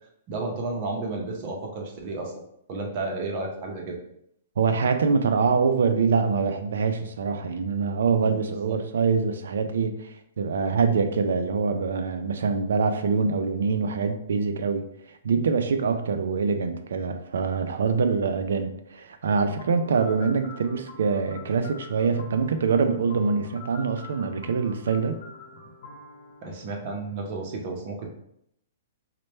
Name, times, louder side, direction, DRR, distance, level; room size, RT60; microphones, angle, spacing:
voice 1, 0.3-2.3 2.7-4.0 8.2-8.4 8.6-8.8 26.4-28.1, right 3 dB, 35° right, 0 dB, 0.7 m, -32 dB
voice 2, 4.6-10.1 10.4-14.9 15.2-25.2, right 5 dB, 75° right, 8 dB, 0.4 m, -24 dB
sound 1, 19.6-27.4, left 2 dB, 55° left, 0.9 m, -46 dB
3.2 x 2.2 x 4.2 m, 0.75 s
hypercardioid pair, 165°, 0 cm